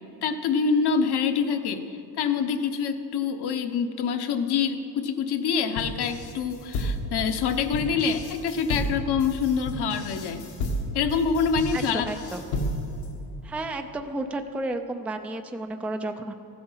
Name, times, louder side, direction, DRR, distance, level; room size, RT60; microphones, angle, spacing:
voice 1, 0.2-10.5 10.9-12.0, left 6 dB, 50° left, 7 dB, 1.0 m, -26 dB
sound 1, 5.8-13.1, left 1 dB, 85° left, 2.0 m, -31 dB
voice 2, 11.7-12.4 13.4-16.3, right 2 dB, 5° right, 7 dB, 0.5 m, -32 dB
14.5 x 7.8 x 5.7 m, 2.9 s
supercardioid pair, 95°, 49 cm